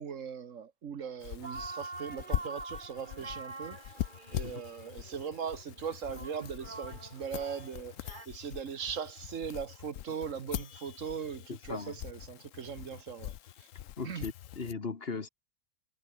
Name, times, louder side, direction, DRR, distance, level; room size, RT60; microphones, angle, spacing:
voice 1, 0.0-3.8 4.3-13.3 13.6-13.7 14.0-14.3, right 7 dB, 65° right, 1.6 m, -39 dB
sound 1, 1.2-14.7, left 12 dB, 70° left, 1.0 m, -42 dB
sound 2, 1.4-8.3, right 3 dB, 35° right, 2.1 m, -46 dB
voice 2, 11.5-12.0 14.0-15.3, left 4 dB, 45° left, 1.8 m, -38 dB
omnidirectional pair, 1.4 m